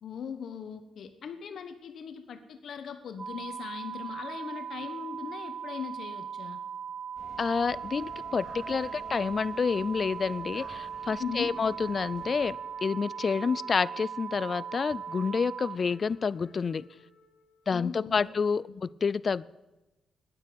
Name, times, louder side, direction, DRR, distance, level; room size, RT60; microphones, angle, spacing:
voice 1, 0.0-6.6 11.2-11.5 17.7-18.4 18.7-18.8, left 7 dB, 65° left, 9 dB, 1.1 m, -39 dB
sound 1, 3.2-15.8, right 7 dB, 35° right, 0.8 m, -39 dB
sound 2, 7.2-12.5, right 1 dB, 15° right, 3.6 m, -50 dB
voice 2, 7.4-16.8 17.7-19.4, left 5 dB, 40° left, 21 dB, 0.4 m, -29 dB
Wind instrument woodwind instrument, 7.5-17.9, left 3 dB, 85° left, 1.9 m, -55 dB
9.8 x 9.6 x 9.6 m, 1.0 s
cardioid pair, 90°, 0 cm